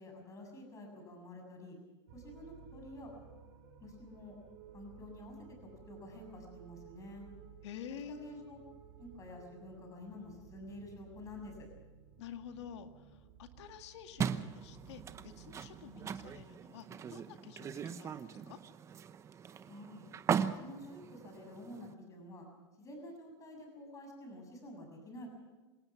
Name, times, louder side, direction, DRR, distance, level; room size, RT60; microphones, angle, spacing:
voice 1, 0.0-1.8 2.1-3.1 3.8-4.4 4.7-7.3 7.9-8.6 9.0-11.7 19.7-20.0 20.4-22.5 22.8-25.3, left 1 dB, 20° left, 3 dB, 7.0 m, -49 dB
sound 1, 2.1-16.4, right 8 dB, 60° right, 2.6 m, -57 dB
voice 2, 7.6-8.4 12.2-18.6, left 8 dB, 75° left, 7 dB, 2.1 m, -49 dB
sound 2, 14.2-21.9, right 7 dB, 20° right, 0.9 m, -39 dB
27.0 x 17.5 x 5.9 m, 1.2 s
supercardioid pair, 145°, 15 cm